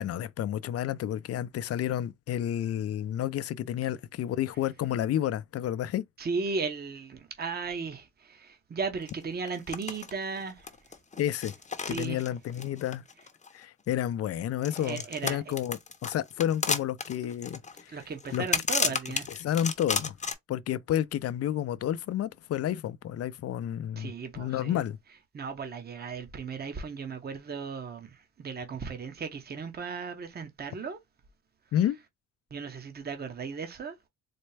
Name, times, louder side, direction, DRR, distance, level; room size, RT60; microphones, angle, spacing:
voice 1, 0.0-6.0 11.2-11.5 11.9-13.0 13.5-17.6 17.9-18.0 18.3-18.4 19.3-20.1 20.5-25.0 31.7-32.0, left 11 dB, 55° left, 0.5 m, -30 dB
voice 2, 6.2-10.7 11.9-12.2 14.7-15.5 17.9-19.4 24.0-24.8 25.3-31.0 32.5-33.9, right 5 dB, 30° right, 1.0 m, -36 dB
sound 1, 9.1-9.2 9.5-10.1 10.4-13.6 14.6-20.3, left 5 dB, 25° left, 0.8 m, -32 dB
4.2 x 2.1 x 3.2 m
cardioid pair, 90°, 30 cm